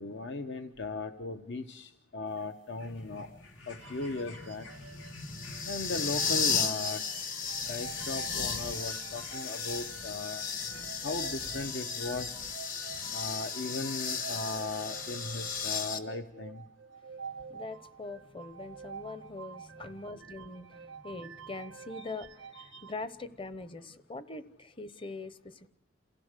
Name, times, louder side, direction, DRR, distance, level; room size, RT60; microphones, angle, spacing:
voice 1, 0.0-3.4 3.7-4.7 5.7-7.0 7.7-10.4 11.0-12.5 13.1-16.6, left 3 dB, 65° left, 0.9 m, -37 dB
sound 1, 2.3-10.9 11.8-11.9, left 4 dB, 90° left, 2.3 m, -57 dB
sound 2, 2.9-16.0, left 6 dB, 45° left, 1.5 m, -35 dB
sound 3, 3.8-22.9, right 6 dB, 85° right, 0.7 m, -48 dB
voice 2, 10.7-11.1 12.7-13.2 17.2-25.7, left 3 dB, 30° left, 0.9 m, -43 dB
28.0 x 16.5 x 6.6 m
head